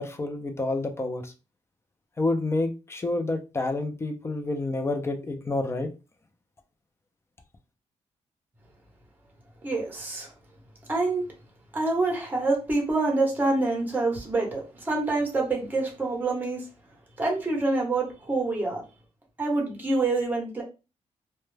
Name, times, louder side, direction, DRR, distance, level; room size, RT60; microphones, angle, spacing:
voice 1, 0.0-1.3 2.2-5.9, left 2 dB, 20° left, 0.4 m, -29 dB
voice 2, 9.6-10.3 10.9-11.2 11.7-16.6 17.2-18.8 19.4-20.6, right 3 dB, 15° right, 1.0 m, -26 dB
2.2 x 2.1 x 3.1 m
cardioid pair, 120°, 12 cm